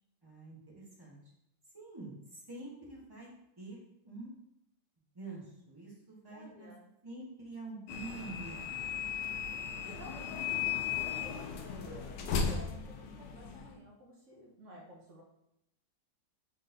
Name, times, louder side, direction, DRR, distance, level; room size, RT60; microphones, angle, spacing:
voice 1, 0.2-1.2 1.7-3.3 3.6-3.8 4.0-4.3 5.1-6.7 7.0-9.1, right 2 dB, 20° right, -4 dB, 0.8 m, -47 dB
voice 2, 6.3-6.9 9.8-11.5 11.8-15.2, equal, 60° right, -2 dB, 0.8 m, -53 dB
sound 1, 7.9-13.7, left 7 dB, 75° left, 1.1 m, -36 dB
4.1 x 3.9 x 2.6 m, 0.80 s
omnidirectional pair, 1.9 m